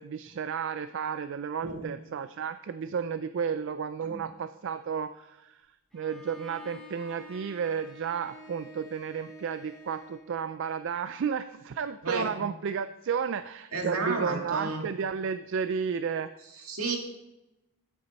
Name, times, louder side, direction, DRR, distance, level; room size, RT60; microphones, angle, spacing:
voice 1, 0.0-5.6 5.9-16.3 16.6-16.7, right 6 dB, 55° right, 11 dB, 0.3 m, -32 dB
Bowed string instrument, 5.9-10.3, equal, ahead, 3.8 m, -48 dB
voice 2, 12.0-12.5 13.7-14.9 16.5-17.0, right 3 dB, 75° right, 2 dB, 2.0 m, -32 dB
12.0 x 8.5 x 4.1 m, 0.94 s
head